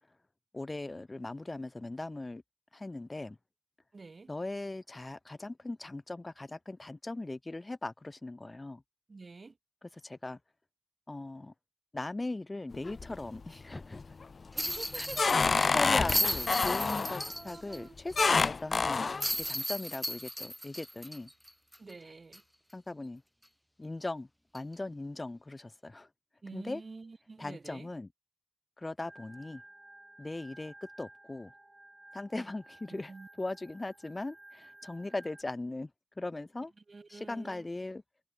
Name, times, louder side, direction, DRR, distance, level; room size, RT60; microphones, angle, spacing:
voice 1, 0.5-2.4 2.7-3.4 4.3-8.8 9.8-10.4 11.1-11.5 11.9-14.0 15.0-15.1 15.7-21.3 22.7-23.2 23.8-24.3 24.5-26.1 26.5-26.8 27.4-28.1 28.8-29.6 30.2-31.5 32.1-35.9 36.2-36.7 37.1-38.0, left 2 dB, 35° left, 1.7 m, -39 dB
voice 2, 3.9-4.3 9.1-9.6 14.5-15.7 16.6-16.8 17.3-18.0 21.8-22.4 26.4-27.9 32.9-33.3 36.9-37.7, right 3 dB, 60° right, 2.2 m, -47 dB
sound 1, 12.7-13.4 13.8-14.2 14.7-17.3 18.2-19.3, left 4 dB, 70° left, 0.4 m, -28 dB
sound 2, 14.6-17.8 18.1-18.2 19.2-21.9 22.3-22.4 24.5-24.7, equal, 5° left, 1.4 m, -35 dB
Organ, 29.0-35.4, right 1 dB, 25° right, 4.0 m, -55 dB
cardioid pair, 55°, 0 cm